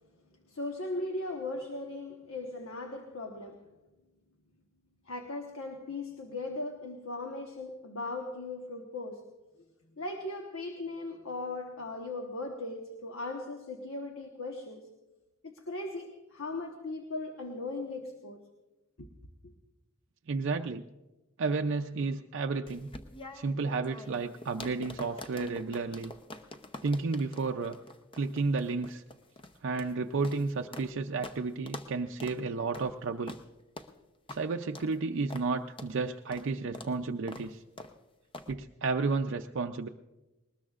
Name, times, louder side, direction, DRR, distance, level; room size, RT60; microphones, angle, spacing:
voice 1, 0.5-3.7 5.0-9.3 10.0-14.9 15.4-18.4 19.0-19.1, left 2 dB, 70° left, 1.2 m, -38 dB
voice 2, 20.3-20.8 21.4-22.9 23.3-26.1 26.8-27.8 28.1-29.0 29.6-33.3 34.3-37.6 38.5-39.9, right 4 dB, 60° right, 0.5 m, -32 dB
sound 1, 22.7-30.9 31.2-31.4 31.7-31.9 32.2-32.4 32.7-32.9 33.3-33.4 33.8-33.9 34.3-34.4 34.7-34.9 35.3-35.5 35.8-35.9 36.3-36.5 36.7-36.9 37.3-37.5 37.8-37.9 38.3-38.5, left 2 dB, 25° left, 0.7 m, -45 dB
20.5 x 19.5 x 2.5 m
head